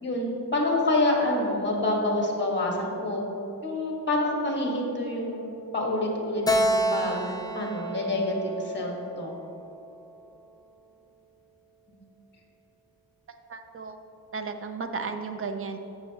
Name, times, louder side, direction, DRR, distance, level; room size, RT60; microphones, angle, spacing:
voice 1, 0.0-3.2 3.6-9.3 11.9-12.0, left 1 dB, 30° left, -1 dB, 1.6 m, -27 dB
Keyboard (musical), 6.5-9.9, equal, 10° left, 0.4 m, -29 dB
voice 2, 13.5-14.0 14.3-15.8, right 4 dB, 35° right, 6 dB, 0.6 m, -34 dB
13.5 x 6.8 x 2.9 m, 2.9 s
wide cardioid pair, 140°, 36 cm